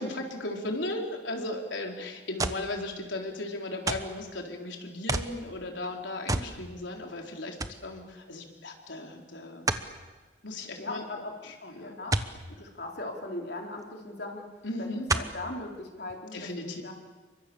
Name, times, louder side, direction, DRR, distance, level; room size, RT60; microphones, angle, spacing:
voice 1, 0.0-7.6 7.8-9.7 10.4-11.0 11.6-12.0 14.6-15.1 16.3-16.8, left 2 dB, 85° left, 2 dB, 4.3 m, -36 dB
sound 1, 2.4-2.7 3.9-4.2 5.1-5.4 6.3-6.6 6.9-7.0 7.6-7.8 9.7-9.9 12.1-12.4 13.8-13.9 15.1-15.4 16.1-16.2, right 2 dB, 20° right, 1.1 m, -29 dB
voice 2, 10.6-12.2 12.5-14.5 14.8-16.5 16.8-16.9, left 2 dB, 60° left, 1 dB, 4.0 m, -39 dB
29.5 x 24.0 x 7.2 m, 1.3 s
head